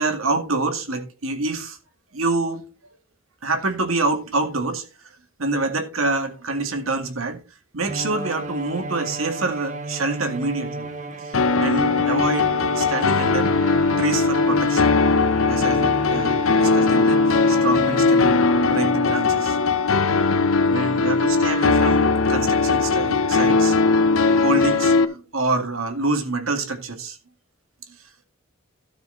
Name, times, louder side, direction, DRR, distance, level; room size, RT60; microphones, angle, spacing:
voice 1, 0.0-1.8 2.1-2.6 3.4-4.8 5.4-7.4 7.7-10.9 11.2-13.6 14.0-14.9 15.5-19.6 20.7-23.8 24.4-27.2 27.9-28.0, right 3 dB, 85° right, 2.0 m, -26 dB
Bowed string instrument, 7.8-19.1, right 1 dB, 35° right, 1.2 m, -33 dB
sound 1, 11.3-25.0, left 4 dB, 80° left, 1.0 m, -19 dB
12.5 x 6.6 x 3.9 m
head